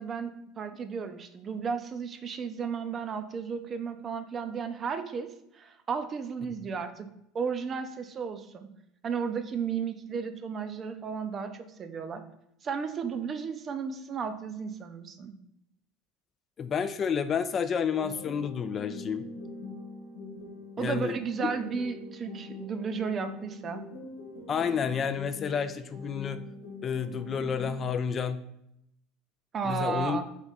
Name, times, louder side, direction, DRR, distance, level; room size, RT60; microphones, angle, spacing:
voice 1, 0.0-7.1 7.3-8.7 9.0-12.2 12.6-15.4 20.8-23.9 29.5-30.2, right 6 dB, 35° right, 9 dB, 0.5 m, -34 dB
voice 2, 16.6-19.3 20.8-21.1 24.5-26.4 26.8-28.4 29.6-30.2, left 7 dB, 35° left, 11 dB, 0.3 m, -30 dB
sound 1, 17.9-27.9, left 2 dB, 75° left, 1.0 m, -43 dB
3.6 x 3.5 x 4.0 m, 0.79 s
supercardioid pair, 90°, 0 cm